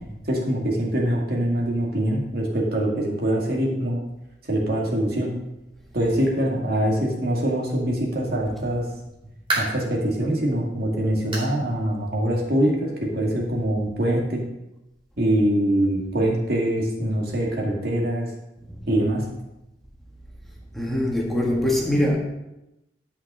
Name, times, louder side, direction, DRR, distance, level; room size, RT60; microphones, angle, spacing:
voice 1, 0.2-4.0 4.5-5.3 5.9-8.9 9.6-14.4 15.2-18.3 18.9-19.3, right 1 dB, 60° right, -2 dB, 2.2 m, -23 dB
sound 1, 9.1-9.9 10.4-10.5 11.3-11.6 11.9-12.0 12.5-12.6 13.7-13.8, right 2 dB, 30° right, 2.8 m, -29 dB
voice 2, 20.7-22.2, left 1 dB, ahead, -3 dB, 1.7 m, -22 dB
11.5 x 5.9 x 5.6 m, 0.94 s
head